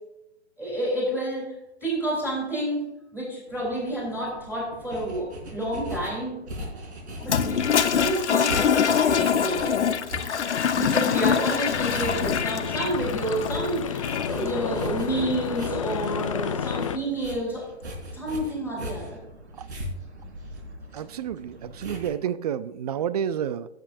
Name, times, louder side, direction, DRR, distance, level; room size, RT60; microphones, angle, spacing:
voice 1, 0.6-1.6 1.8-2.9 3.1-6.4 7.2-9.9 10.7-17.7 18.1-19.2, right 1 dB, 5° right, -3 dB, 3.6 m, -29 dB
sound 1, 3.5-22.1, equal, 70° right, 4.2 m, -39 dB
Toilet flush, 7.2-14.5, left 7 dB, 80° left, 1.0 m, -24 dB
sound 2, 11.7-17.0, left 8 dB, 30° left, 0.4 m, -31 dB
voice 2, 20.9-23.7, right 9 dB, 35° right, 16 dB, 0.4 m, -30 dB
16.0 x 7.6 x 2.6 m, 0.90 s
hypercardioid pair, 145°, 34 cm